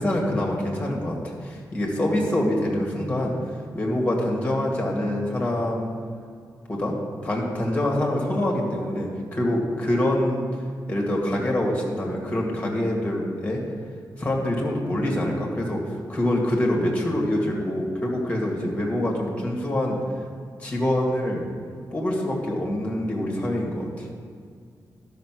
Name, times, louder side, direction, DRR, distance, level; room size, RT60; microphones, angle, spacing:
voice 1, 0.0-3.3 3.7-5.9 6.7-7.0 7.2-10.4 10.9-13.6 14.2-15.8 16.1-20.0 20.6-21.5 21.9-24.1, left 1 dB, 15° left, -1 dB, 1.9 m, -25 dB
12.0 x 5.8 x 6.2 m, 2.2 s
wide cardioid pair, 160°, 8 cm